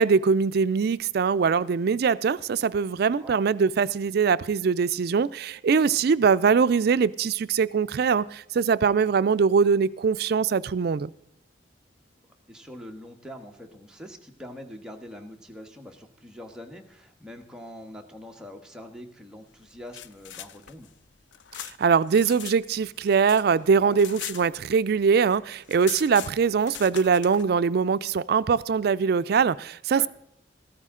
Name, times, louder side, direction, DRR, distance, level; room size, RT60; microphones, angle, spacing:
voice 1, 0.0-11.1 21.6-30.1, right 6 dB, 60° right, 16 dB, 0.4 m, -22 dB
voice 2, 12.5-20.9 23.8-24.0 29.9-30.1, equal, 5° right, 2 dB, 1.2 m, -44 dB
sound 1, 19.7-22.6 22.9-25.0 25.3-25.4 25.6-27.4, left 11 dB, 90° left, 0.5 m, -40 dB
14.0 x 13.5 x 3.7 m, 0.77 s
head